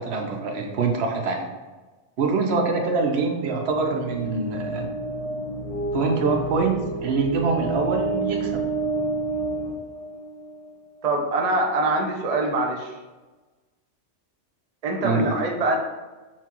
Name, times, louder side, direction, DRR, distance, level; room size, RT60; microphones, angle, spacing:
voice 1, 0.0-1.5 2.2-4.9 5.9-8.6 15.0-15.3, right 4 dB, 65° right, 2 dB, 0.8 m, -24 dB
sound 1, 3.7-10.7, right 2 dB, 45° left, 0.5 m, -29 dB
voice 2, 11.0-12.9 14.8-15.8, right 2 dB, 50° right, 1 dB, 0.5 m, -24 dB
5.8 x 2.3 x 2.9 m, 1.2 s
omnidirectional pair, 1.2 m